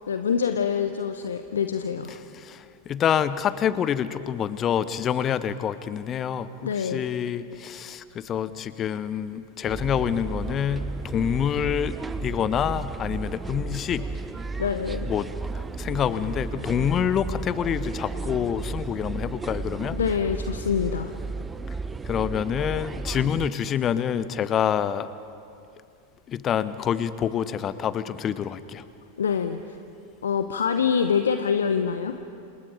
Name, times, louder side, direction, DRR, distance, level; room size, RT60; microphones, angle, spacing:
voice 1, 0.1-2.2 6.6-7.0 14.6-15.1 19.9-21.1 29.2-29.6 30.2-32.2, left 7 dB, 65° left, 9 dB, 1.0 m, -25 dB
voice 2, 2.4-14.1 15.1-15.3 15.5-20.0 22.1-25.1 26.3-28.8, left 9 dB, 30° left, 15 dB, 1.0 m, -27 dB
sound 1, 9.6-23.5, right 4 dB, 15° right, 0.8 m, -33 dB
30.0 x 28.0 x 5.1 m, 2.5 s
figure-of-eight pair, 90°, 0 cm